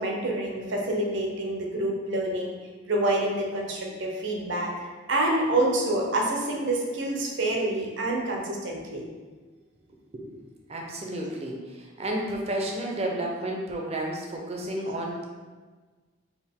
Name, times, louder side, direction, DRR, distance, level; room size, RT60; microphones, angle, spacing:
voice 1, 0.0-2.6 2.9-9.0, right 1 dB, 65° right, -1 dB, 0.7 m, -27 dB
voice 2, 9.9-10.4 10.7-15.2, right 1 dB, 30° right, 0 dB, 0.6 m, -32 dB
4.6 x 2.5 x 3.5 m, 1.4 s
head